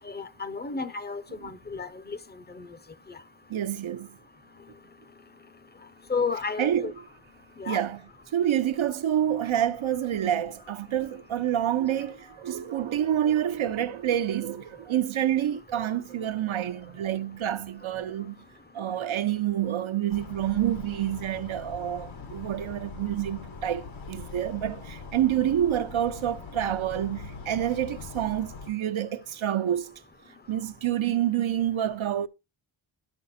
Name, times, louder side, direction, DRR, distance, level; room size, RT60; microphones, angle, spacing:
voice 1, 0.0-2.2 2.5-2.7 3.1-3.2 6.1-6.9 7.6-7.8, left 4 dB, 20° left, 0.7 m, -32 dB
voice 2, 3.5-4.1 6.6-6.9 7.7-8.0 8.3-18.4 18.7-29.9 30.5-32.3, right 11 dB, 75° right, 0.8 m, -28 dB
sound 1, 20.1-28.7, left 4 dB, 75° left, 1.6 m, -42 dB
12.5 x 5.8 x 4.2 m
wide cardioid pair, 180°, 47 cm